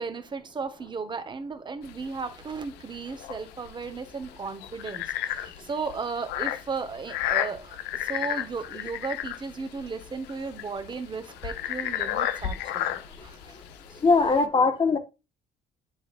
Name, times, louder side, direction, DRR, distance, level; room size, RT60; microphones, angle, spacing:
voice 1, 0.0-13.6 13.9-14.0, right 4 dB, 25° right, 1.0 m, -35 dB
sound 1, 1.8-14.4, left 12 dB, 90° left, 0.7 m, -33 dB
voice 2, 14.0-15.0, left 4 dB, 30° left, 1.2 m, -20 dB
10.5 x 4.2 x 2.4 m
cardioid pair, 110°, 17 cm